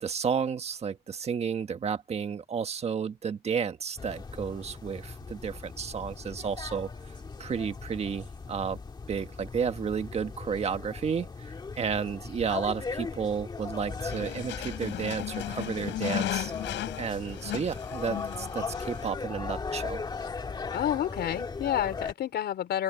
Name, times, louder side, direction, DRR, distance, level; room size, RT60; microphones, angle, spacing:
voice 1, 0.0-6.9 7.4-8.8 9.1-20.0, right 6 dB, 35° right, 1.5 m, -32 dB
sound 1, 4.0-22.1, left 4 dB, 25° left, 1.8 m, -38 dB
sound 2, 14.0-19.1, left 14 dB, 85° left, 7.7 m, -36 dB
voice 2, 20.7-22.8, left 11 dB, 65° left, 4.2 m, -29 dB
open air
cardioid pair, 145°, 18 cm